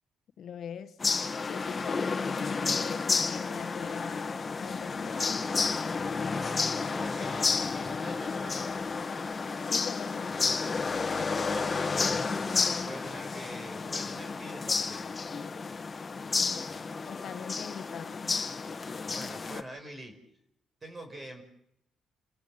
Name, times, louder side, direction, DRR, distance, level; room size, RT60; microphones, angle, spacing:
voice 1, 0.4-1.0 1.4-5.3 9.6-10.4 17.1-18.4, left 8 dB, 65° left, 1.4 m, -42 dB
sound 1, 1.0-19.6, left 4 dB, 30° left, 1.9 m, -31 dB
voice 2, 6.2-8.7 11.1-15.2 19.0-20.2 20.8-21.4, right 1 dB, 30° right, 5.2 m, -45 dB
29.5 x 14.5 x 7.5 m
cardioid pair, 90°, 0 cm